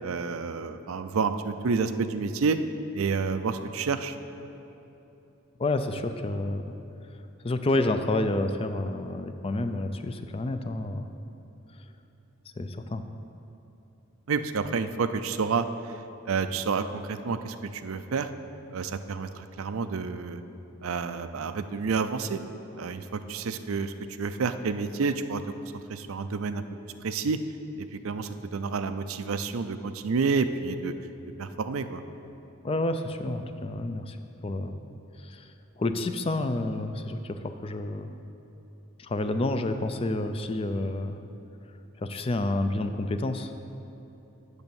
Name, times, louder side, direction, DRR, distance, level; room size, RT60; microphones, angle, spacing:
voice 1, 0.0-2.6 2.9-4.2 14.3-15.7 16.3-18.3 18.7-20.4 20.8-22.4 22.8-25.4 25.9-26.6 27.0-27.4 27.8-30.9 31.4-32.0, right 5 dB, 90° right, 10 dB, 0.5 m, -29 dB
voice 2, 5.6-6.6 7.1-11.1 12.6-13.0 32.6-34.2 34.4-34.8 35.2-35.5 35.8-38.1 39.0-41.2 42.0-43.5, left 2 dB, 25° left, 8 dB, 0.4 m, -29 dB
8.1 x 6.5 x 7.0 m, 2.9 s
head